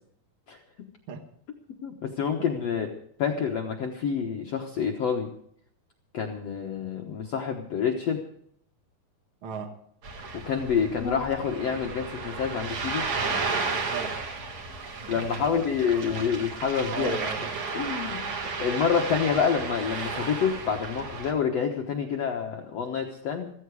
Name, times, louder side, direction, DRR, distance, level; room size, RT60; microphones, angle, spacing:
voice 1, 1.8-2.9 3.2-5.3 6.1-8.2 10.3-13.0 15.1-17.2 17.7-18.2 18.6-23.5, left 7 dB, 75° left, 2 dB, 1.4 m, -27 dB
voice 2, 9.4-9.8 13.9-14.2 15.0-15.5 16.9-17.5 18.3-18.6, right 5 dB, 70° right, 5 dB, 1.2 m, -36 dB
Ocean, 10.0-21.3, right 4 dB, 50° right, 2.6 m, -33 dB
15.5 x 15.5 x 4.8 m, 0.64 s
omnidirectional pair, 4.8 m